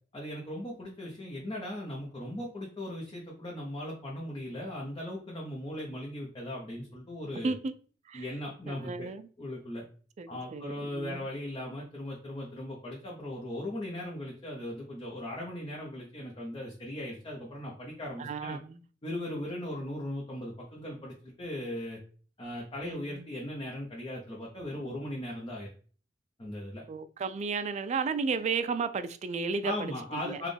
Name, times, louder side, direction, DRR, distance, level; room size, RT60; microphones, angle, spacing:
voice 1, 0.1-7.5 8.1-9.1 9.4-9.8 10.3-18.6 19.0-22.0 22.4-25.7 26.4-26.8 29.6-30.5, left 1 dB, 30° left, 0.7 m, -38 dB
voice 2, 8.7-9.3 10.2-11.2 18.2-18.8 22.8-23.3 26.9-29.7 30.2-30.4, right 4 dB, 40° right, 0.3 m, -33 dB
4.1 x 2.2 x 3.3 m
head